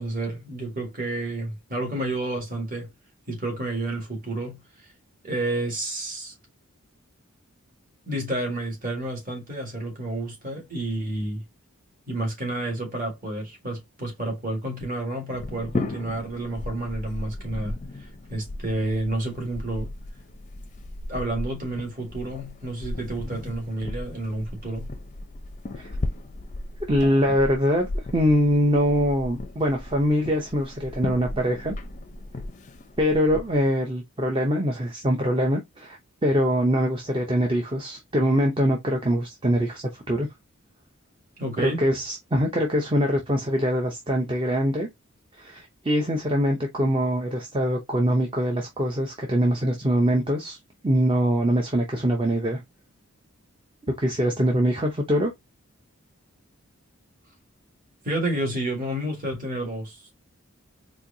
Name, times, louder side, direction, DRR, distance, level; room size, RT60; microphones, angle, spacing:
voice 1, 0.0-2.9 3.3-4.6 5.2-6.3 8.1-11.4 12.1-17.8 18.3-19.9 21.1-24.9 41.4-41.8 58.0-60.1, right 1 dB, 40° right, 1.8 m, -30 dB
sound 1, 15.3-33.8, left 2 dB, 35° left, 0.5 m, -36 dB
voice 2, 26.9-31.7 33.0-40.3 41.6-44.9 45.4-50.6 50.8-52.6 53.9-55.3, equal, 25° right, 0.6 m, -23 dB
4.4 x 2.6 x 2.6 m
head